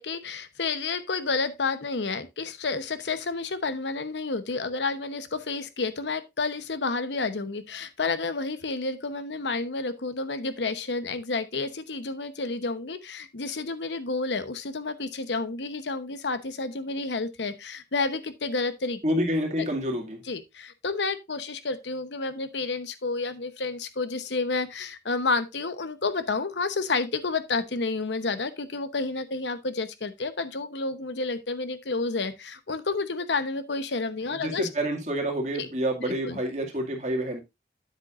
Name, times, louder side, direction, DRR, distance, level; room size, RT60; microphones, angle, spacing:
voice 1, 0.0-19.0 19.6-19.7 20.2-34.7 35.5-35.7 36.1-36.4, left 3 dB, 90° left, 0.9 m, -30 dB
voice 2, 19.0-20.2 34.3-37.4, equal, 40° right, 2.2 m, -28 dB
9.5 x 8.1 x 2.5 m
head